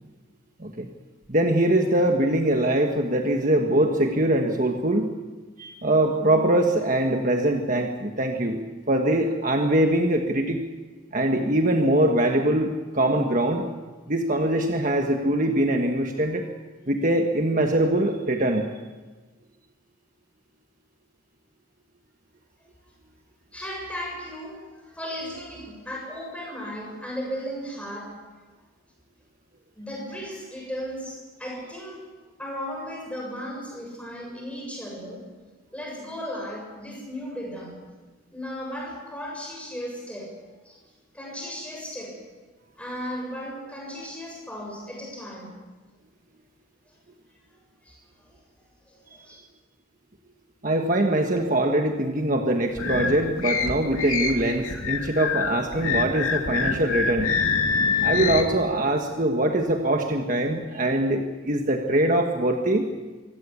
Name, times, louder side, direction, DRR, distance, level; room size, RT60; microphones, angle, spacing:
voice 1, 1.3-5.1 5.6-8.6 8.9-10.6 11.1-13.6 14.1-16.5 16.9-18.7 50.6-57.3 58.0-62.9, right 1 dB, 40° right, 3 dB, 1.4 m, -23 dB
voice 2, 23.5-28.3 29.8-32.0 32.4-35.3 35.7-37.8 38.3-40.4 40.6-40.8 41.1-42.2 42.8-45.5 47.8-48.4 48.9-49.4, equal, 5° left, -1 dB, 7.3 m, -36 dB
sound 1, 52.7-58.4, left 5 dB, 90° left, 2.6 m, -26 dB
25.0 x 16.5 x 8.6 m, 1.3 s
head